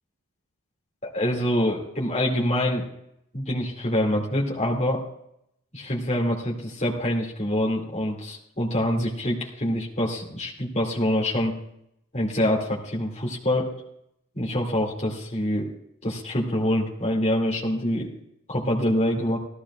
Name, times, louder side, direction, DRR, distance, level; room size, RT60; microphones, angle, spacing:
voice 1, 1.0-2.9 3.3-5.0 5.7-11.6 12.1-13.7 14.3-15.7 16.0-18.1 18.5-19.4, left 1 dB, 30° left, -3 dB, 2.5 m, -25 dB
18.5 x 15.0 x 2.5 m, 0.76 s
head